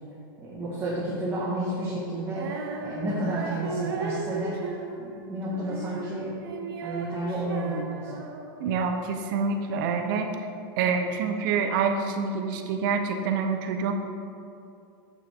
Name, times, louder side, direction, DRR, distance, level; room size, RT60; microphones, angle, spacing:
voice 1, 0.4-4.6 5.0-6.3 6.8-8.2, right 1 dB, 20° right, -9 dB, 1.8 m, -31 dB
Female singing, 2.3-8.7, right 3 dB, 85° right, 1.1 m, -35 dB
voice 2, 8.6-10.5 10.8-13.9, right 5 dB, 60° right, 5 dB, 0.9 m, -27 dB
8.5 x 7.0 x 3.7 m, 2.7 s
supercardioid pair, 135°, 12 cm